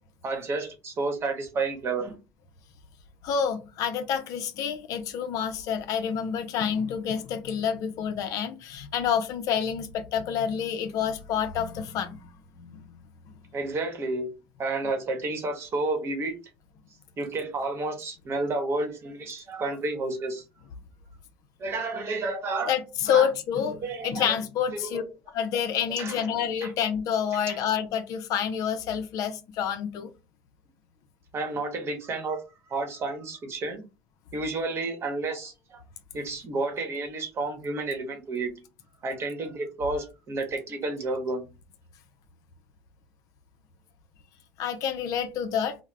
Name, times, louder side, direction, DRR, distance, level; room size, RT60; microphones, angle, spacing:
voice 1, 0.2-2.2 13.5-14.3 14.6-16.4 17.2-20.4 21.6-22.7 23.1-23.3 23.8-24.3 24.8-25.0 26.0-26.3 26.6-26.7 27.5-27.6 31.3-32.4 32.7-33.8 34.3-35.8 36.1-38.5 39.0-41.5, right 3 dB, 40° right, 0.9 m, -31 dB
voice 2, 3.2-12.3 12.6-12.8 22.7-23.8 24.0-25.0 25.3-30.1 44.6-45.7, left 8 dB, 60° left, 0.4 m, -28 dB
2.3 x 2.0 x 3.1 m
hypercardioid pair, 80°, 7 cm